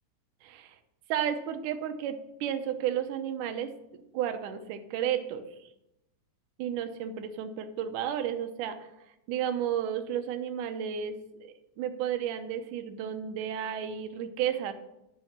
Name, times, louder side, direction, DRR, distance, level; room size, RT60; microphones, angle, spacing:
voice 1, 0.4-0.8 1.1-3.7 4.1-5.4 6.6-8.8 9.3-11.1 11.4-14.7, right 9 dB, 75° right, 8 dB, 2.3 m, -32 dB
10.5 x 6.4 x 7.2 m, 0.90 s
omnidirectional pair, 3.9 m